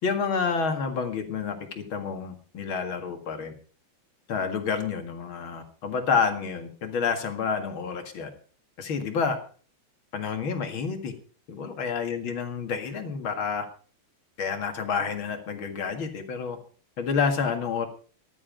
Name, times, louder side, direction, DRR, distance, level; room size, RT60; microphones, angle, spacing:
voice 1, 0.0-3.5 4.3-8.3 8.8-9.4 10.1-11.1 11.5-13.7 14.4-16.6 17.0-17.9, left 5 dB, 65° left, 6 dB, 2.7 m, -29 dB
15.0 x 11.0 x 5.2 m, 0.41 s
omnidirectional pair, 2.4 m